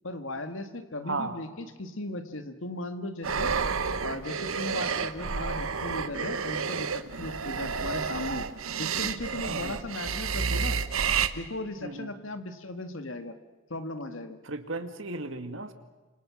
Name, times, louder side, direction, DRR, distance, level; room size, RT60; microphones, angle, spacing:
voice 1, 0.0-3.5 4.0-8.5 8.8-10.8 11.3-13.3 13.7-14.4, left 2 dB, 70° left, 8 dB, 2.0 m, -37 dB
voice 2, 1.0-1.4 9.5-9.8 11.8-12.1 14.4-15.7, right 3 dB, 70° right, 8 dB, 2.2 m, -35 dB
sound 1, 3.2-11.3, right 5 dB, 85° right, 1.2 m, -30 dB
29.5 x 26.5 x 6.4 m, 1.2 s
head